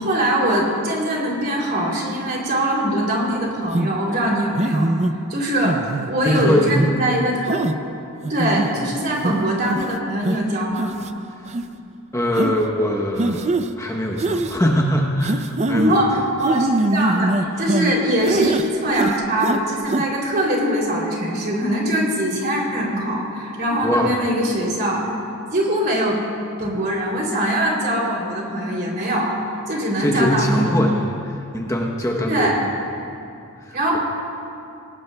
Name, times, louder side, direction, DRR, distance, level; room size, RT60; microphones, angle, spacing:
voice 1, 0.0-4.9 5.3-7.6 8.2-10.9 15.7-25.1 25.5-26.2 26.6-29.4 29.7-31.0 32.3-32.6 33.7-34.0, right 1 dB, 45° right, -2 dB, 3.0 m, -22 dB
sound 1, 3.7-3.9 4.6-5.1 5.6-6.1 6.7-6.9 7.5-7.7 8.2-8.7 9.2-9.3 9.7-9.9 10.2-10.4 10.8-11.1 11.5-11.6 12.4-12.5 13.2-13.7 14.2-14.6 15.2-15.9 16.4-17.9 18.2-18.7 18.9-19.6 19.9-20.0, right 2 dB, 30° right, 0.4 m, -22 dB
voice 2, 6.2-6.9 8.8-8.9 12.1-16.0 23.8-24.1 30.0-31.1 31.5-32.7 33.6-34.0, equal, 15° left, 0 dB, 0.8 m, -22 dB
23.5 x 18.0 x 2.3 m, 2.6 s
head